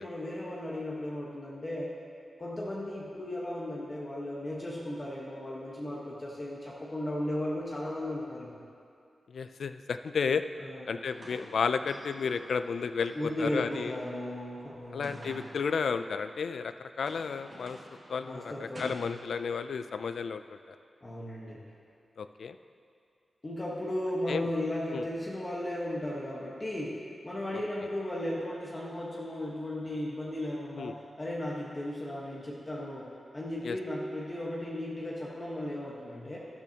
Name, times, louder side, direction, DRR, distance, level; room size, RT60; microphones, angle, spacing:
voice 1, 0.0-2.0 2.4-8.6 10.6-10.9 13.1-15.4 18.2-19.1 21.0-21.7 23.4-36.4, left 1 dB, 25° left, -5 dB, 1.3 m, -36 dB
voice 2, 9.3-10.4 10.8-14.0 14.9-17.8 18.1-20.4 20.7-20.8 22.2-22.6 24.3-24.4 24.9-25.0 30.8-30.9 33.6-33.8, left 5 dB, 85° left, 10 dB, 0.4 m, -32 dB
sound 1, 11.0-16.5 16.8-19.0, right 1 dB, 40° right, 1.8 m, -51 dB
12.5 x 12.0 x 2.9 m, 2.4 s
wide cardioid pair, 120°, 0 cm